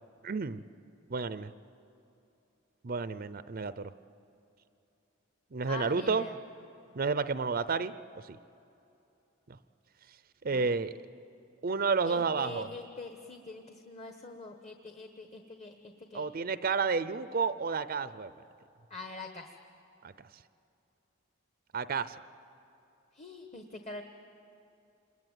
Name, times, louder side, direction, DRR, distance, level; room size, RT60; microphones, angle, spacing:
voice 1, 0.2-0.6 1.1-1.5 2.8-3.9 5.5-6.3 6.9-7.9 8.3-8.4 10.4-10.9 11.6-12.7 16.1-18.3 20.0-20.1 21.7-22.2, right 4 dB, 45° right, 14 dB, 0.5 m, -30 dB
voice 2, 5.7-6.3 10.5-10.8 12.0-16.3 18.9-19.5 23.1-24.0, left 3 dB, 35° left, 5 dB, 1.2 m, -44 dB
27.5 x 21.5 x 9.2 m, 2.8 s
head